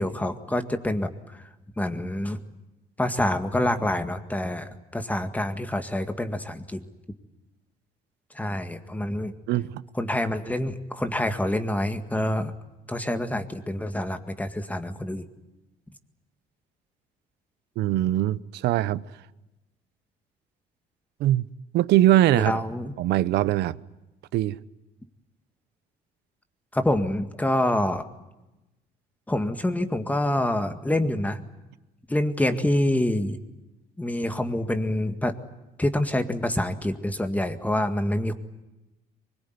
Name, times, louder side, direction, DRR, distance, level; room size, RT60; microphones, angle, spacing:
voice 1, 0.0-1.5 1.8-2.4 3.0-6.9 8.3-9.3 10.0-12.5 12.9-15.2 22.3-22.9 26.7-28.1 29.3-31.4 32.1-33.4 34.0-35.3 35.8-38.3, left 1 dB, 10° left, 1.9 m, -26 dB
voice 2, 9.5-9.8 17.8-19.0 21.2-21.5 21.7-22.5 23.0-23.8 24.3-24.6, right 14 dB, 80° right, 0.8 m, -21 dB
23.5 x 22.0 x 9.5 m
cardioid pair, 110°, 17 cm